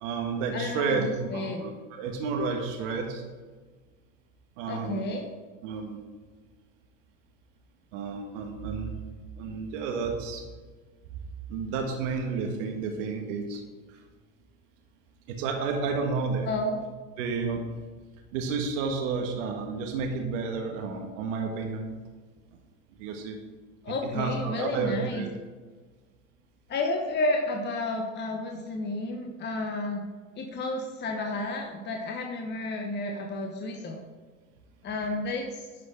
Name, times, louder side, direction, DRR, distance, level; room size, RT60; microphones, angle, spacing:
voice 1, 0.0-3.2 4.6-5.0 5.6-6.0 7.9-9.0 9.4-10.4 11.5-13.6 13.9-14.0 15.3-16.5 17.2-17.6 18.3-21.9 23.0-23.4 24.0-25.3, right 4 dB, 70° right, 3 dB, 1.5 m, -31 dB
voice 2, 0.5-1.6 4.7-5.3 16.4-16.8 23.8-25.2 26.7-30.0 30.4-34.0 34.8-35.7, left 2 dB, 25° left, 2 dB, 1.0 m, -31 dB
11.0 x 4.1 x 5.0 m, 1.4 s
hypercardioid pair, 105°, 39 cm